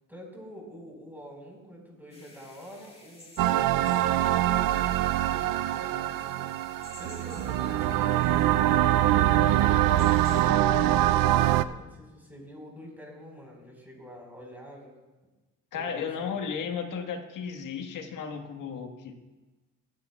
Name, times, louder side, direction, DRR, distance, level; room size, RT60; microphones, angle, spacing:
voice 1, 0.1-14.9 15.7-16.4, equal, 5° right, -1 dB, 4.4 m, -47 dB
sound 1, 2.1-10.5, left 2 dB, 15° left, 2.4 m, -53 dB
sound 2, 3.4-11.6, right 13 dB, 70° right, 0.5 m, -24 dB
voice 2, 15.7-19.1, left 6 dB, 65° left, 5 dB, 1.5 m, -34 dB
20.0 x 9.8 x 2.3 m, 1.1 s
cardioid pair, 80°, 35 cm